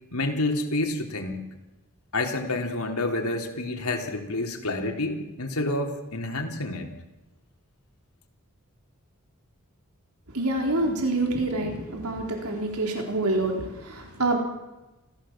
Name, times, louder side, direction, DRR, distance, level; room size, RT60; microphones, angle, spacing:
voice 1, 0.1-1.4 2.1-6.9, left 2 dB, 80° left, 2 dB, 3.6 m, -28 dB
voice 2, 10.3-14.4, right 2 dB, 85° right, 2 dB, 3.8 m, -27 dB
27.5 x 15.5 x 7.5 m, 1.0 s
head